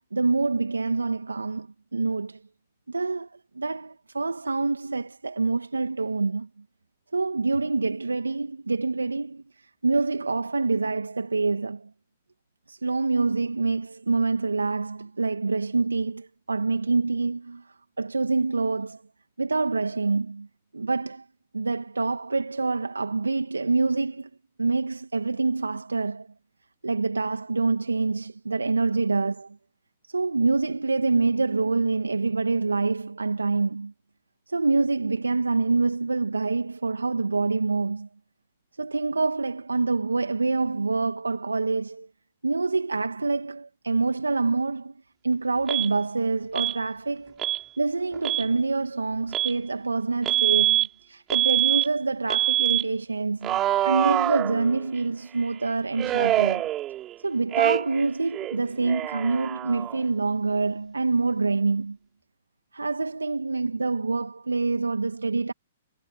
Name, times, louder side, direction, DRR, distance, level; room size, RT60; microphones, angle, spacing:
voice 1, 0.1-1.7 1.9-2.4 2.9-3.3 3.6-6.5 7.1-9.4 9.8-11.9 12.7-17.6 18.0-19.0 19.4-20.5 20.7-21.2 21.5-24.3 24.6-26.3 26.8-29.6 30.1-33.9 34.5-38.1 38.8-42.1 42.4-44.9 45.2-47.4 47.8-53.6 53.8-56.6 57.2-62.0 62.7-65.5, right 3 dB, 90° right, 2.4 m, -26 dB
Alarm, 45.7-45.9 46.6-46.8 47.4-47.6 48.1-48.5 49.3-49.6 50.3-50.9 51.3-51.9 52.3-52.8 53.4-55.0 56.0-57.2 57.5-58.1 58.3-60.0, right 13 dB, 25° right, 5.3 m, -25 dB
figure-of-eight pair, 120°, 0 cm